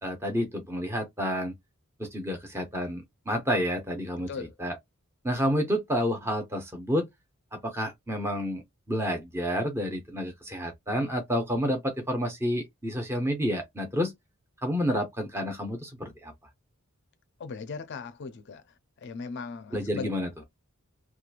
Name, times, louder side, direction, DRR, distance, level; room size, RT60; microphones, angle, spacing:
voice 1, 0.0-1.5 2.0-4.8 5.2-7.1 7.5-14.1 14.6-16.3 19.7-20.3, equal, 10° right, 0.6 m, -29 dB
voice 2, 17.4-18.6 19.0-20.1, left 4 dB, 50° left, 0.4 m, -38 dB
2.9 x 2.3 x 2.4 m
head